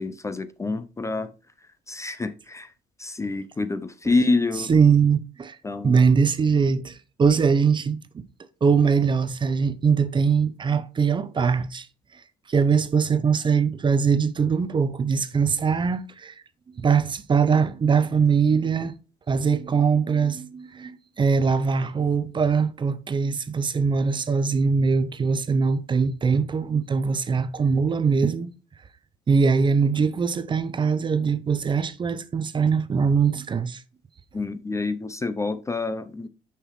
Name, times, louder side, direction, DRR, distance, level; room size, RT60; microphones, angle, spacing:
voice 1, 0.0-1.3 1.6-2.7 3.0-4.8 5.6-6.0 34.3-36.3, left 3 dB, 15° left, 0.5 m, -27 dB
voice 2, 4.7-5.6 5.8-8.2 8.6-11.9 12.5-16.3 16.8-18.9 19.3-28.5 29.3-33.8, right 5 dB, 30° right, 0.6 m, -22 dB
6.6 x 5.7 x 3.1 m
cardioid pair, 110°, 17 cm